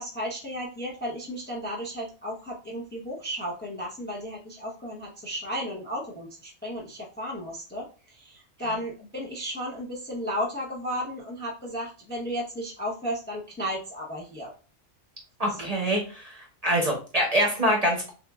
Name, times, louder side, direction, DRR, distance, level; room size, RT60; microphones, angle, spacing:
voice 1, 0.0-14.5 15.5-15.7, equal, 10° left, -3 dB, 0.6 m, -34 dB
voice 2, 15.4-18.1, equal, 35° right, 0 dB, 0.8 m, -25 dB
5.9 x 2.4 x 2.3 m, 0.35 s
omnidirectional pair, 1.3 m